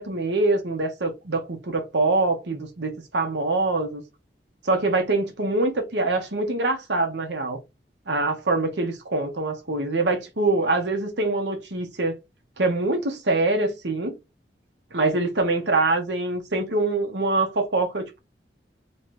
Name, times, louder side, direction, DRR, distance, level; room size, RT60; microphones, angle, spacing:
voice 1, 0.0-4.0 4.6-7.6 8.1-12.2 12.6-14.2 14.9-18.2, right 2 dB, 85° right, 1.1 m, -24 dB
3.2 x 2.9 x 4.6 m
head